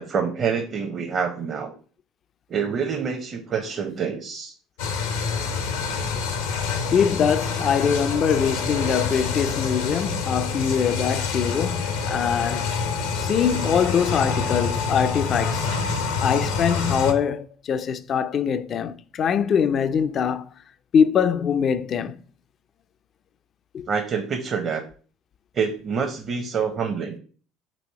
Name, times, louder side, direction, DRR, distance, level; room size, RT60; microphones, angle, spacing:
voice 1, 0.0-1.7 2.5-4.5 23.9-24.8 25.5-27.2, right 6 dB, 45° right, 0.7 m, -26 dB
sound 1, 4.8-17.1, left 5 dB, 80° left, 0.7 m, -26 dB
voice 2, 6.9-12.6 13.2-15.6 16.2-20.5 20.9-22.2 23.7-23.9, left 7 dB, 50° left, 0.3 m, -23 dB
4.1 x 2.7 x 4.5 m
hypercardioid pair, 70°, 0 cm